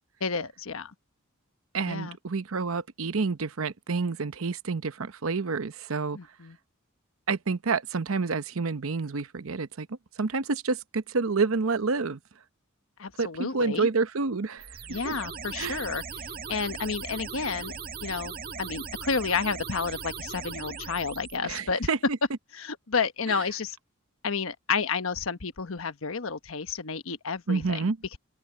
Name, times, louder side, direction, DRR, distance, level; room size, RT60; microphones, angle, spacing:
voice 1, 0.2-0.9 1.9-2.2 6.1-6.6 13.0-13.9 14.9-21.9 22.5-23.8 24.2-28.2, left 5 dB, 80° left, 1.1 m, -31 dB
voice 2, 1.7-6.2 7.3-9.9 10.2-12.2 13.2-14.7 15.0-15.1 15.6-15.8 21.4-22.2 23.3-23.4 27.5-28.0, right 4 dB, 80° right, 0.8 m, -28 dB
sound 1, 14.6-21.4, right 5 dB, 45° right, 2.1 m, -39 dB
open air
head